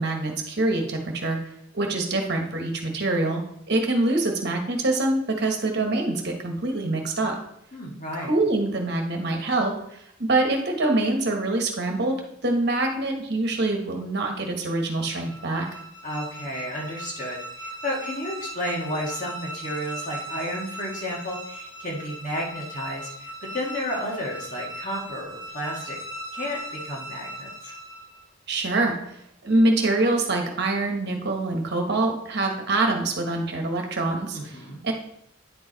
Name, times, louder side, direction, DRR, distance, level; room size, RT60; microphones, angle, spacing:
voice 1, 0.0-1.4 1.7-7.4 8.1-15.7 28.5-29.2 29.4-34.6 34.8-34.9, right 2 dB, 50° right, 2 dB, 1.3 m, -25 dB
voice 2, 7.7-8.3 16.0-26.0 26.3-27.7 34.3-34.8, equal, 35° left, -2 dB, 1.8 m, -32 dB
sound 1, 14.9-28.3, right 1 dB, 80° left, 3.1 m, -38 dB
9.6 x 4.8 x 4.1 m, 0.73 s
head